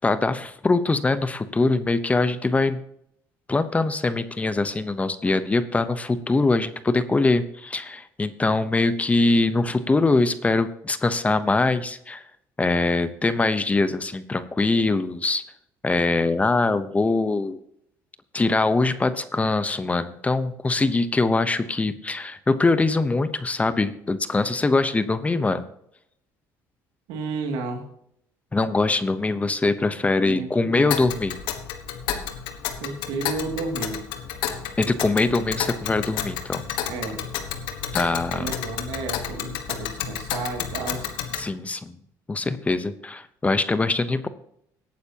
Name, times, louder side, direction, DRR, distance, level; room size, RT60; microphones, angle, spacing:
voice 1, 0.0-2.8 3.5-12.2 12.6-15.4 15.8-17.6 18.3-25.6 28.5-31.4 34.8-36.6 37.9-38.5 41.4-42.0 42.3-44.3, left 3 dB, 20° left, 13 dB, 0.8 m, -23 dB
voice 2, 27.1-27.8 30.2-31.0 32.8-34.0 36.9-37.2 38.3-41.1, right 3 dB, 90° right, 3 dB, 2.4 m, -32 dB
Tick, 30.9-41.5, left 9 dB, 85° left, 1.3 m, -31 dB
18.0 x 9.4 x 2.9 m, 0.73 s
cardioid pair, 105°, 8 cm